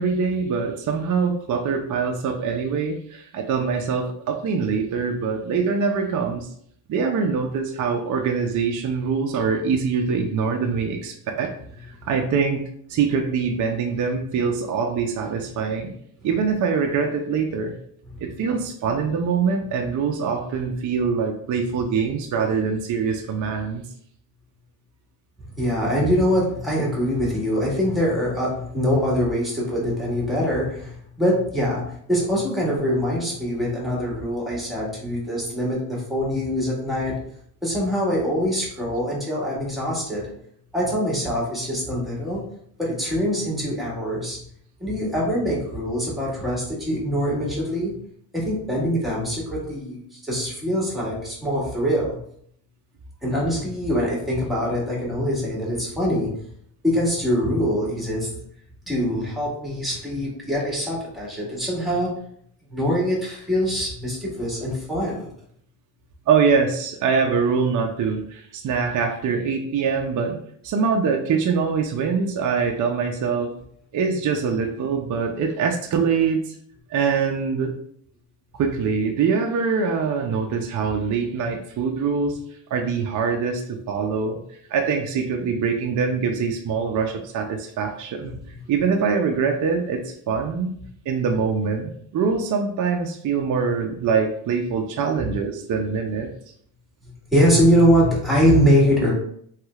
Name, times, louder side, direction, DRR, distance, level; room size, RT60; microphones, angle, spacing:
voice 1, 0.0-6.5 6.9-11.5 11.8-12.6 12.9-15.9 16.2-17.7 18.2-23.9 66.3-73.5 73.9-76.5 76.9-77.7 78.6-82.4 82.7-84.4 84.7-88.4 88.7-90.7 91.1-96.3, right 5 dB, 45° right, 3 dB, 0.4 m, -24 dB
voice 2, 25.6-37.2 37.6-40.2 40.7-42.4 42.8-44.4 44.8-48.0 48.3-52.2 53.2-56.5 56.8-58.3 58.9-62.1 62.7-65.3 88.2-88.4 95.2-95.3 97.0-99.1, equal, ahead, -4 dB, 1.4 m, -23 dB
3.2 x 3.1 x 2.3 m, 0.65 s
cardioid pair, 105°, 45 cm